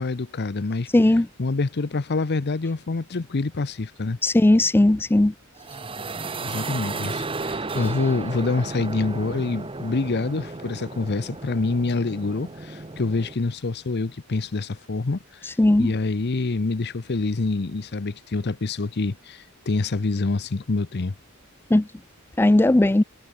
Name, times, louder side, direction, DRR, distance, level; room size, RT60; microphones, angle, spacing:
voice 1, 0.0-0.9 1.4-4.2 6.4-15.5 15.8-21.1, left 3 dB, 50° left, 0.7 m, -26 dB
voice 2, 0.9-1.3 4.2-5.3 15.6-15.9 21.7-21.9 22.4-23.0, left 1 dB, 10° left, 0.3 m, -17 dB
sound 1, 5.6-13.3, right 3 dB, 25° right, 1.0 m, -34 dB
head